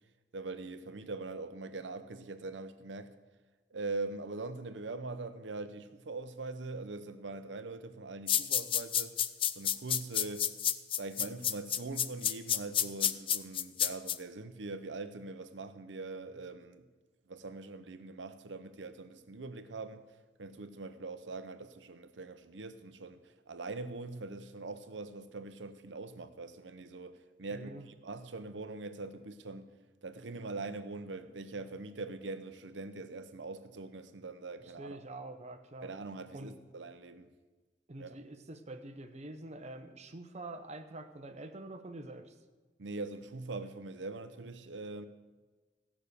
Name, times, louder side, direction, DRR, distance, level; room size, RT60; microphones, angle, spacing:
voice 1, 0.3-3.1 3.7-9.2 9.5-10.5 11.0-16.8 17.3-20.0 20.4-29.7 30.0-35.0 35.8-37.3 38.0-38.2 42.8-45.1, right 3 dB, 80° right, 0.8 m, -42 dB
sound 1, 8.3-14.2, left 10 dB, 30° left, 0.4 m, -29 dB
voice 2, 27.5-27.9 34.6-35.9 36.3-36.6 37.9-42.4, right 2 dB, 40° right, 0.9 m, -46 dB
15.5 x 6.2 x 6.7 m
head